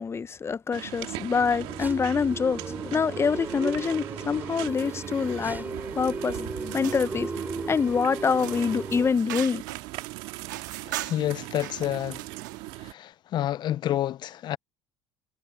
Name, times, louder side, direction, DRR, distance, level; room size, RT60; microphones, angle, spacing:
voice 1, 0.0-7.3 7.7-9.6, left 5 dB, 25° left, 0.9 m, -26 dB
sound 1, 0.7-12.9, right 20 dB, 70° right, 2.4 m, -39 dB
sound 2, 1.4-9.1, right 3 dB, 20° right, 6.1 m, -36 dB
sound 3, 6.6-12.7, right 16 dB, 90° right, 2.4 m, -41 dB
voice 2, 10.9-12.2 12.8-14.6, left 12 dB, 50° left, 0.6 m, -29 dB
hypercardioid pair, 80°, 10 cm